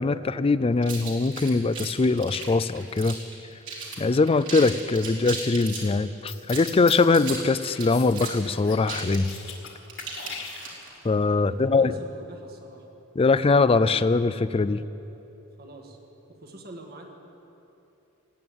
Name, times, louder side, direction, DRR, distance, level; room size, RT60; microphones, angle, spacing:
voice 1, 0.0-3.2 4.0-9.3 11.0-11.9 13.2-14.8, left 3 dB, 25° left, 14 dB, 0.4 m, -22 dB
sound 1, 0.8-3.3 3.6-4.0 4.3-5.9 6.4-11.0, right 4 dB, 65° right, 3.5 m, -37 dB
sound 2, 6.3-7.0 7.9-8.9 9.1-9.7 10.0-11.0, left 7 dB, 65° left, 2.0 m, -39 dB
voice 2, 11.4-12.9 15.6-16.0 16.3-17.1, right 1 dB, 45° right, 2 dB, 1.8 m, -44 dB
18.5 x 8.8 x 8.9 m, 3.0 s
head